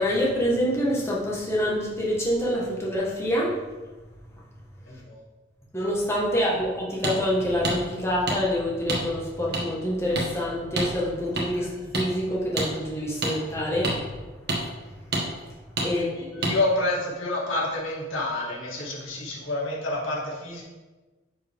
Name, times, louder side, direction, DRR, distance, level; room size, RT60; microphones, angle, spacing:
voice 1, 0.0-3.6 5.7-14.1 15.8-16.5, equal, 15° left, -5 dB, 1.5 m, -26 dB
voice 2, 4.9-5.2 6.3-6.5 11.6-11.7 15.9-20.6, left 2 dB, 90° left, -4 dB, 2.1 m, -29 dB
sound 1, 7.0-7.2 7.6-7.8 8.3-8.4 8.9-9.0 9.5-9.6 10.1-10.3 10.8-10.9 11.4-11.5 11.9-12.1 12.6-12.7 13.2-13.3 13.8-14.0 14.5-14.6 15.1-15.2 15.8-15.9 16.4-16.5, right 2 dB, 55° right, 1.6 m, -26 dB
10.0 x 5.2 x 3.6 m, 1.2 s
head